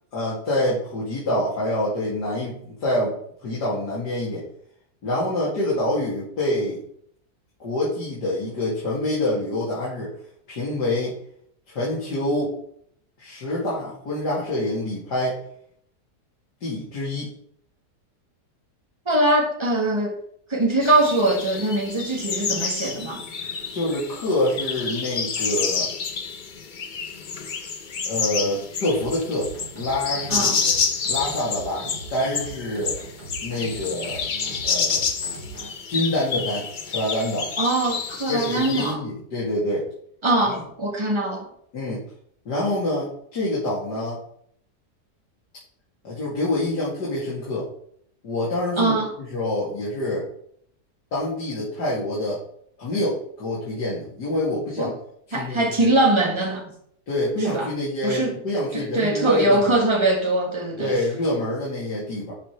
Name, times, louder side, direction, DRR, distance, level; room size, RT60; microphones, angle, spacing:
voice 1, 0.1-4.5 5.0-6.8 7.6-10.1 10.5-11.2 11.7-12.5 13.2-15.4 16.6-17.4 23.7-25.9 28.1-30.7 31.1-33.0 33.4-34.2 34.6-35.0 35.9-37.5 38.3-39.8 40.4-40.6 41.7-42.0 42.5-44.2 46.0-47.7 48.2-50.3 51.1-52.4 52.8-54.9 55.3-55.9 57.1-59.8 60.8-62.3, left 1 dB, 90° left, 3.0 m, -26 dB
voice 2, 19.1-20.2 20.5-23.2 30.3-30.6 37.6-39.0 40.2-41.5 48.8-49.1 54.8-54.9 55.3-56.7 57.4-57.7 58.0-58.4 58.7-61.0, right 2 dB, 15° right, 1.8 m, -22 dB
sound 1, 20.8-38.9, left 5 dB, 40° left, 0.7 m, -29 dB
sound 2, 28.9-35.7, right 3 dB, 75° right, 4.0 m, -40 dB
11.5 x 5.1 x 4.5 m
omnidirectional pair, 1.7 m